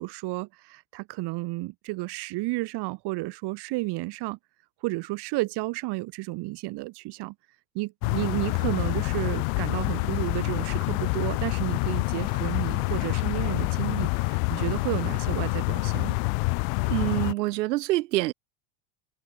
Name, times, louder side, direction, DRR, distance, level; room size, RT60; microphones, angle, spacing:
voice 1, 0.0-4.4 4.8-7.3 7.7-16.2, right 22 dB, 55° right, 6.3 m, -32 dB
sound 1, 8.0-17.3, left 40 dB or more, 65° left, 1.9 m, -27 dB
voice 2, 16.8-18.3, right 18 dB, 80° right, 7.1 m, -26 dB
supercardioid pair, 125°, 48 cm